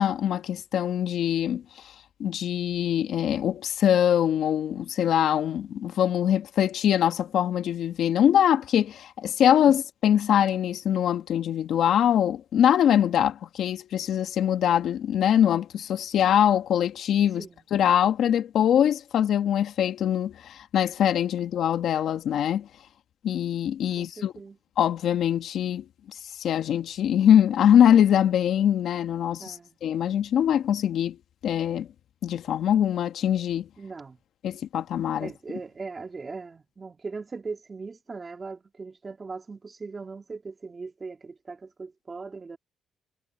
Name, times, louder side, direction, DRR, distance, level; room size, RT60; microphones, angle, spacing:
voice 1, 0.0-1.6 2.2-17.4 17.7-22.7 23.2-24.3 24.8-25.8 26.4-29.5 29.8-31.2 31.4-31.9 32.2-33.7 34.4-35.3, left 10 dB, 70° left, 1.7 m, -23 dB
voice 2, 24.0-24.6 29.4-29.8 33.8-34.2 35.2-42.6, right 4 dB, 30° right, 2.6 m, -39 dB
cardioid pair, 90°, 0 cm